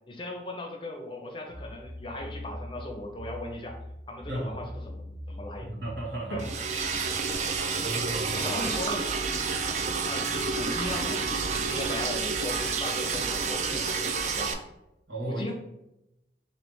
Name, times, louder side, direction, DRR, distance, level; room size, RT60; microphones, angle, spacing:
voice 1, 0.1-3.8 4.1-5.7 6.3-6.5 8.3-9.1 10.1-14.6 15.3-15.5, left 1 dB, 30° left, 2 dB, 0.6 m, -37 dB
sound 1, 1.5-8.8 9.5-11.9, equal, 55° right, 1.0 m, -44 dB
voice 2, 5.6-6.4 7.8-8.5 15.1-15.5, right 1 dB, 75° right, -4 dB, 1.5 m, -34 dB
Liquid, 6.4-14.5, right 5 dB, 40° right, 0.3 m, -29 dB
3.2 x 2.9 x 4.6 m, 0.88 s
head